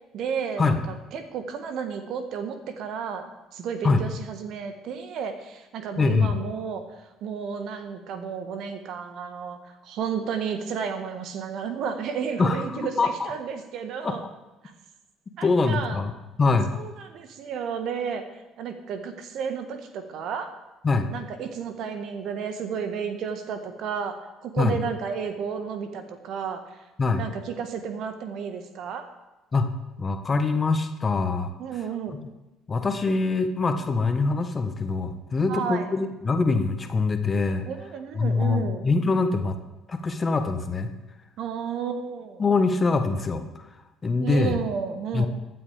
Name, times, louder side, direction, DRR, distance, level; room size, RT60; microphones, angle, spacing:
voice 1, 0.1-14.2 14.6-14.7 15.4-16.0 16.7-18.2 18.6-20.5 21.1-26.8 27.2-29.1 31.6-32.2 35.5-35.9 37.6-38.8 41.4-42.4 44.2-45.3, right 6 dB, 55° right, 8 dB, 1.5 m, -32 dB
voice 2, 6.0-6.3 12.4-13.3 14.0-14.1 15.4-16.1 16.4-16.7 20.8-21.1 24.6-24.8 27.0-27.2 29.5-29.7 30.0-31.5 32.7-37.7 38.2-39.6 39.9-40.9 42.4-43.4 44.0-44.6 45.1-45.3, left 3 dB, 30° left, 7 dB, 1.4 m, -23 dB
24.0 x 9.3 x 3.5 m, 1.1 s
figure-of-eight pair, 50°, 0 cm